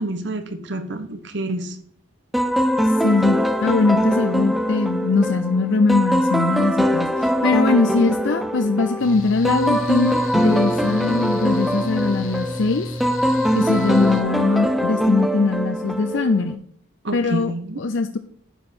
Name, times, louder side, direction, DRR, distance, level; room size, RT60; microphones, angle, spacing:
voice 1, 0.0-1.8 17.0-17.8, right 1 dB, 60° right, 8 dB, 1.2 m, -28 dB
sound 1, 2.3-16.6, equal, ahead, 0.5 m, -22 dB
voice 2, 3.0-12.9 13.5-16.6 17.1-17.5 17.8-18.2, left 3 dB, 60° left, 8 dB, 0.5 m, -21 dB
Mechanical fan, 9.0-14.2, left 1 dB, 80° left, 1.3 m, -32 dB
9.7 x 5.2 x 4.4 m, 0.67 s
head